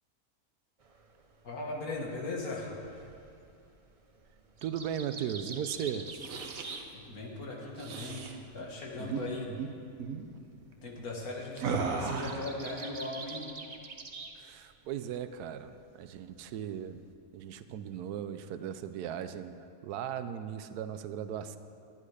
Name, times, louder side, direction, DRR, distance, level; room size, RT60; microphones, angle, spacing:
sound 1, 0.8-7.5 7.8-14.4 14.6-15.3 15.7-17.1, right 4 dB, 50° right, 0.4 m, -47 dB
voice 1, 1.4-2.7 6.9-8.3 8.5-9.5 10.8-13.4, left 2 dB, 70° left, -2 dB, 2.1 m, -38 dB
voice 2, 4.6-6.1 14.4-17.0 17.3-19.6 19.8-21.6, right 9 dB, 90° right, 11 dB, 1.1 m, -37 dB
sound 2, 6.0-6.8 7.7-8.3 9.0-9.2 9.5-9.7 10.0-10.3 11.6-12.5, right 5 dB, 65° right, 1.2 m, -35 dB
11.0 x 10.0 x 4.9 m, 2.5 s
omnidirectional pair, 1.6 m